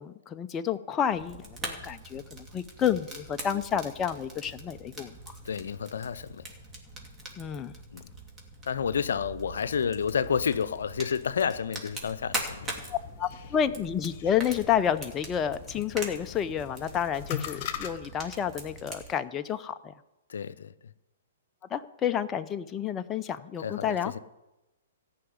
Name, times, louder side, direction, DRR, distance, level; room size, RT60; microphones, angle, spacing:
voice 1, 0.0-5.3 7.4-7.7 12.9-19.9 21.7-24.1, left 9 dB, 20° left, 0.6 m, -30 dB
Fire, 1.1-19.1, right 2 dB, 15° right, 2.5 m, -42 dB
voice 2, 5.4-6.5 7.9-8.1 8.7-12.7 20.3-20.7 23.6-24.2, left 7 dB, 75° left, 0.6 m, -30 dB
sound 1, 12.5-17.9, left 9 dB, 45° left, 1.7 m, -41 dB
14.5 x 5.8 x 9.5 m
hypercardioid pair, 130°, 0 cm